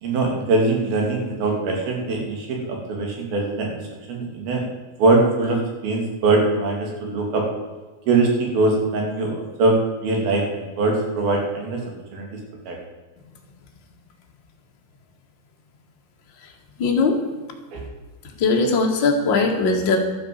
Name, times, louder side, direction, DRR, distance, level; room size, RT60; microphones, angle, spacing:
voice 1, 0.0-3.8 4.1-4.6 5.0-7.4 8.1-11.8 12.1-12.3 12.7-12.8 17.7-17.8, right 3 dB, 70° right, 1 dB, 4.7 m, -22 dB
voice 2, 16.8-17.2 18.4-20.0, left 4 dB, 40° left, 1 dB, 2.0 m, -19 dB
12.5 x 9.5 x 8.0 m, 1.3 s
omnidirectional pair, 4.5 m